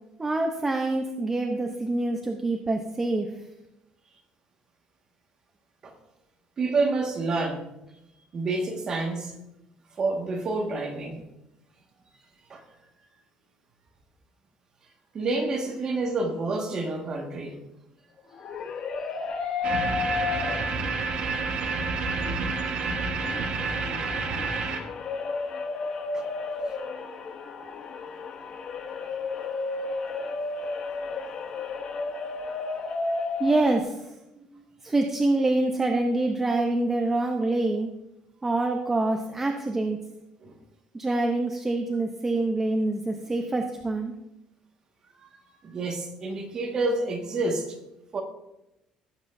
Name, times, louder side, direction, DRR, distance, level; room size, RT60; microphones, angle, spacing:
voice 1, 0.2-3.3 33.4-34.1 34.8-37.9 38.4-40.0 40.9-44.1, right 2 dB, 15° right, 3 dB, 0.6 m, -26 dB
voice 2, 6.6-7.6 8.3-9.3 10.0-11.2 12.5-12.6 15.1-17.6 26.1-26.3 34.3-34.6 40.4-40.5 45.2-45.3 45.6-47.8 48.1-48.2, right 3 dB, 30° right, 2 dB, 1.6 m, -28 dB
sound 1, 18.2-21.0 21.4-21.5 22.1-33.8, left 4 dB, 40° left, 0.9 m, -33 dB
sound 2, 19.6-24.8, right 4 dB, 50° right, 1.3 m, -29 dB
16.5 x 7.8 x 2.6 m, 0.90 s
cardioid pair, 170°, 2 cm